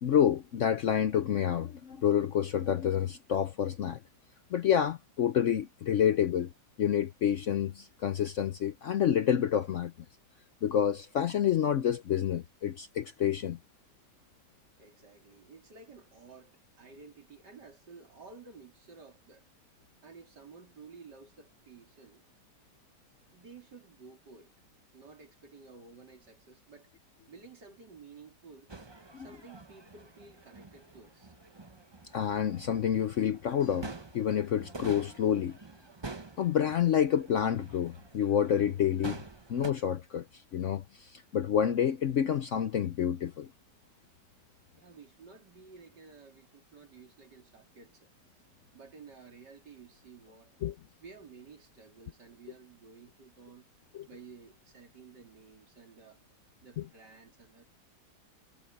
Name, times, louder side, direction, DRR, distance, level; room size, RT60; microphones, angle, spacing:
voice 1, 0.0-4.0 4.5-6.5 6.8-9.9 10.6-13.6 29.1-29.3 32.1-35.6 36.4-39.2 39.5-40.2 40.5-43.5 50.6-50.7 53.9-54.1 56.8-56.9, left 9 dB, 60° left, 0.8 m, -28 dB
voice 2, 14.8-19.5 20.0-22.2 23.3-24.7 24.9-26.9 27.3-28.7 29.2-31.3 44.7-48.1 48.7-50.6 51.0-53.7 54.1-56.2 56.6-57.7, right 4 dB, 75° right, 3.9 m, -53 dB
sound 1, 28.7-39.7, right 3 dB, 20° right, 0.7 m, -47 dB
omnidirectional pair, 1.9 m